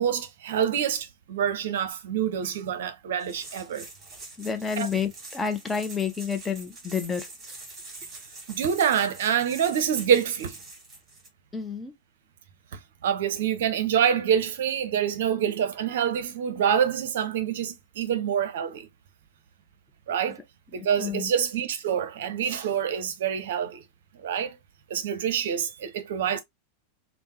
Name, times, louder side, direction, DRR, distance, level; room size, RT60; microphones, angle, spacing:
voice 1, 0.0-3.9 4.8-4.9 8.5-10.6 13.0-18.9 20.1-20.4 20.7-23.8 24.2-24.5 24.9-26.4, right 8 dB, 60° right, 0.6 m, -26 dB
sound 1, 3.2-11.3, right 3 dB, 20° right, 1.6 m, -44 dB
voice 2, 4.4-7.3 11.5-11.9 20.8-21.3, left 6 dB, 15° left, 0.5 m, -30 dB
3.4 x 2.0 x 2.8 m
figure-of-eight pair, 90°, 0 cm